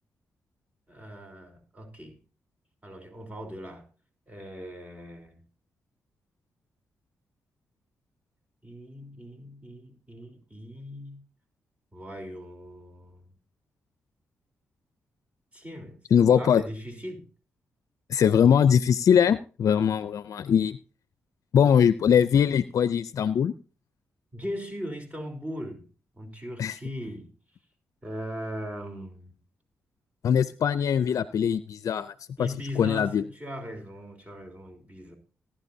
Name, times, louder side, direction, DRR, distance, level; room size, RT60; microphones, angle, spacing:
voice 1, 0.9-2.2 2.8-3.9 4.3-5.4 8.6-11.2 11.9-13.3 15.5-16.0 16.3-17.3 24.3-25.9 26.2-27.3 28.0-29.4 32.4-35.1, equal, 25° right, 3.7 m, -39 dB
voice 2, 16.1-16.6 18.1-20.8 21.5-23.5 26.6-26.8 30.2-32.1 32.4-33.2, left 8 dB, 70° left, 0.5 m, -22 dB
19.0 x 10.5 x 2.7 m
supercardioid pair, 55°, 6 cm